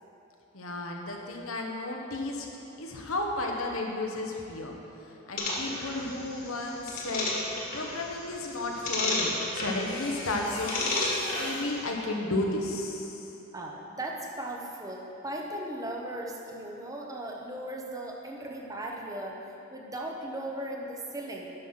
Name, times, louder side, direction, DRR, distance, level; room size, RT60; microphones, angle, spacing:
voice 1, 0.5-2.5 2.8-4.8 5.3-7.3 7.7-10.9 11.4-13.3, left 2 dB, 85° left, 0 dB, 1.2 m, -33 dB
voice 2, 2.7-3.1 13.5-21.5, right 1 dB, 15° right, -1 dB, 0.8 m, -37 dB
sound 1, 5.4-11.8, left 2 dB, 45° left, 1.6 m, -33 dB
sound 2, 8.5-8.6 9.8-11.9, left 2 dB, 25° left, 1.2 m, -39 dB
10.0 x 6.2 x 5.8 m, 3.0 s
head